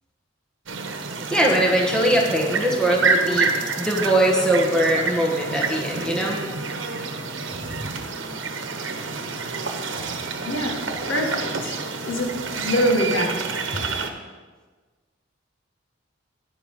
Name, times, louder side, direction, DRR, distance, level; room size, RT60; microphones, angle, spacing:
sound 1, 0.7-14.1, right 4 dB, 85° right, 1.0 m, -28 dB
voice 1, 1.3-6.4 7.8-7.9, right 1 dB, 5° left, -2 dB, 1.7 m, -21 dB
voice 2, 10.4-10.8 11.1-11.8 12.0-13.4, equal, 80° left, 1 dB, 1.9 m, -24 dB
12.5 x 9.9 x 3.9 m, 1.4 s
head